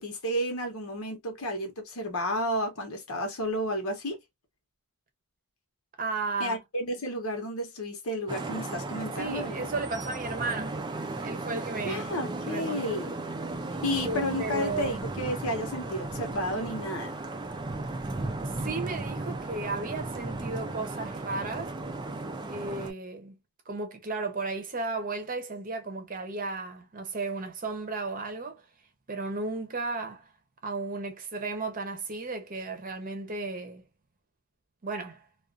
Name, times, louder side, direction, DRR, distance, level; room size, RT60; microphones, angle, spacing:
voice 1, 0.0-4.2 6.4-9.7 11.8-13.2 13.8-17.2, equal, 80° left, 1.0 m, -32 dB
voice 2, 6.0-6.6 9.1-10.8 11.2-13.0 13.9-15.0 18.4-21.7 22.5-23.4 23.7-28.6 29.1-30.3 30.6-33.8 34.8-35.3, right 3 dB, 40° right, 0.7 m, -34 dB
Vehicle horn car horn honking / Traffic noise roadway noise, 8.3-22.9, right 2 dB, 20° right, 0.3 m, -35 dB
2.4 x 2.3 x 2.3 m
head